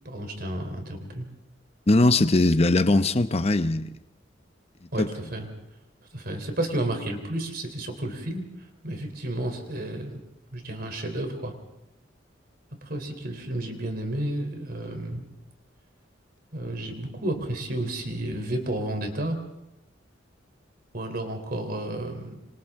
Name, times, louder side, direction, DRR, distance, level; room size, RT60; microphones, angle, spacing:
voice 1, 0.0-1.3 4.9-5.5 6.1-8.4 8.8-10.2 10.5-11.5 12.9-15.2 16.5-19.4 20.9-22.4, right 1 dB, 55° right, 5 dB, 3.6 m, -31 dB
voice 2, 1.9-4.0 5.0-5.1, left 2 dB, 35° left, 11 dB, 0.8 m, -20 dB
27.0 x 26.5 x 3.7 m, 0.89 s
head